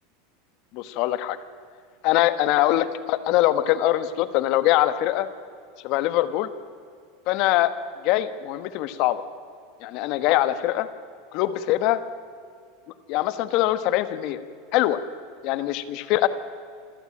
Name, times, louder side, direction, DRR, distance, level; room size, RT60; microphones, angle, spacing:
voice 1, 0.7-1.4 2.0-5.3 5.8-6.5 7.3-7.7 8.0-9.2 9.8-10.9 11.3-12.0 13.1-14.4 14.7-15.0 15.4-16.3, left 14 dB, 50° left, 13 dB, 1.4 m, -23 dB
27.0 x 14.5 x 8.9 m, 2.3 s
supercardioid pair, 150°, 0 cm